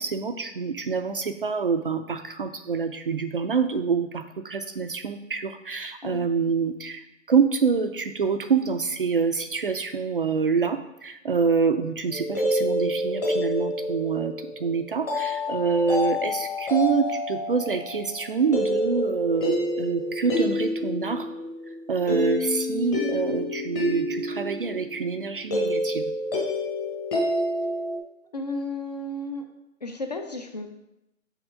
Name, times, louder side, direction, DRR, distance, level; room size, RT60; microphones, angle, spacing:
voice 1, 0.0-7.0 7.3-21.3 21.9-26.1, right 5 dB, 45° right, 8 dB, 0.4 m, -26 dB
sound 1, 12.1-28.0, left 1 dB, 10° left, 0.8 m, -28 dB
voice 2, 28.3-29.5 29.8-30.7, left 2 dB, 35° left, 5 dB, 0.5 m, -33 dB
6.2 x 4.3 x 4.9 m, 0.89 s
hypercardioid pair, 150°, 40 cm